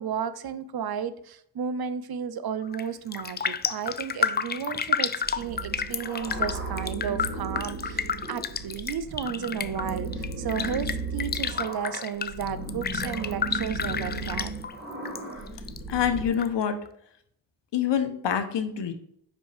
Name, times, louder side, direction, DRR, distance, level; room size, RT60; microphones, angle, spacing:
voice 1, 0.0-14.5, right 7 dB, 60° right, 14 dB, 0.6 m, -33 dB
Raindrop, 2.6-2.9 3.1-15.2 15.5-16.5 16.9-17.0, left 6 dB, 25° left, 0.3 m, -31 dB
sound 1, 5.2-16.3, right 3 dB, 25° right, 2.4 m, -36 dB
voice 2, 15.9-16.8 17.7-18.9, left 8 dB, 75° left, 8 dB, 1.0 m, -26 dB
5.5 x 5.1 x 3.4 m, 0.68 s
cardioid pair, 70°, 42 cm